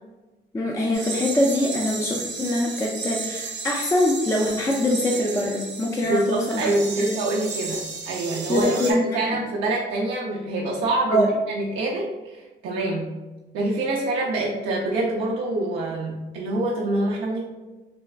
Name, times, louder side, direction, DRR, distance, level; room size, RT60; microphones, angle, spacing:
voice 1, 0.5-6.7 7.0-7.2 8.5-9.4 11.1-11.3, left 1 dB, 15° left, -2 dB, 0.4 m, -23 dB
sound 1, 0.9-8.9, right 4 dB, 65° right, 0.8 m, -34 dB
voice 2, 6.1-8.8 9.1-13.1 13.5-17.4, right 2 dB, 90° right, -4 dB, 0.5 m, -25 dB
3.3 x 2.1 x 2.4 m, 1.1 s
cardioid pair, 90°, 20 cm